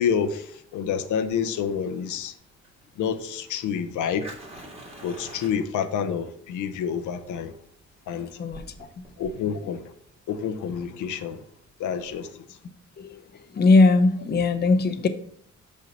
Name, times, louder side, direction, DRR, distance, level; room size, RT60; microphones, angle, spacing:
voice 1, 0.0-2.3 3.0-4.3 5.0-7.6 8.1-8.5 9.2-9.9 10.3-11.4 11.8-12.6, left 7 dB, 75° left, 0.7 m, -28 dB
Fire, 1.3-12.2, right 1 dB, 20° right, 1.8 m, -48 dB
voice 2, 8.4-8.9 13.0-13.2 13.5-15.1, left 3 dB, 35° left, 0.7 m, -20 dB
5.7 x 5.1 x 4.1 m
cardioid pair, 90°, 30 cm